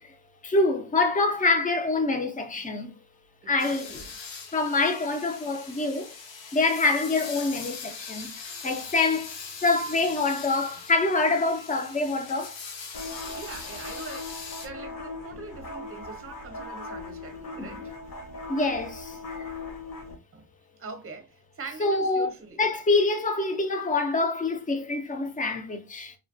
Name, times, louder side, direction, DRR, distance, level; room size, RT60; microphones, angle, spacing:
voice 1, 0.4-2.9 3.5-4.0 4.5-6.1 6.5-8.3 8.6-9.3 9.6-12.6 17.6-17.8 18.5-19.5 21.8-22.3 22.6-26.2, left 3 dB, 20° left, 0.4 m, -25 dB
voice 2, 3.4-4.1 13.2-17.9 20.3-20.5 20.8-22.6, right 4 dB, 30° right, 0.7 m, -43 dB
sound 1, 3.6-14.7, left 5 dB, 80° left, 0.8 m, -41 dB
sound 2, 12.9-20.2, left 3 dB, 50° left, 0.8 m, -39 dB
3.2 x 2.2 x 2.5 m
cardioid pair, 135°, 44 cm